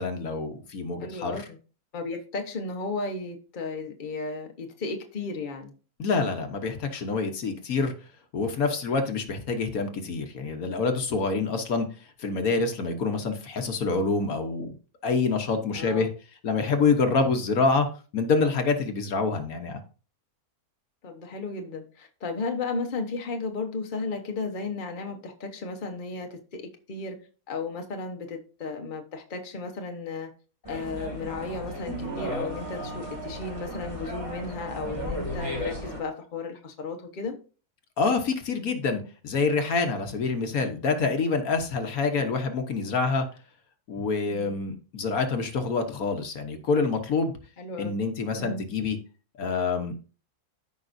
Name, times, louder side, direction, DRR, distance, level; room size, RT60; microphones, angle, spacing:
voice 1, 0.0-1.4 6.0-7.9 8.3-14.7 15.0-16.1 16.4-17.9 18.1-19.8 38.0-43.3 43.9-47.3 47.8-49.0 49.4-50.0, left 4 dB, 70° left, 1.5 m, -26 dB
voice 2, 1.0-1.6 1.9-5.7 15.7-16.0 21.0-27.2 27.5-30.3 30.7-37.4 44.3-44.5 47.6-47.9 48.3-48.6, left 3 dB, 35° left, 1.1 m, -34 dB
sound 1, 30.6-36.0, equal, 20° right, 2.2 m, -35 dB
13.5 x 5.4 x 2.6 m
omnidirectional pair, 1.6 m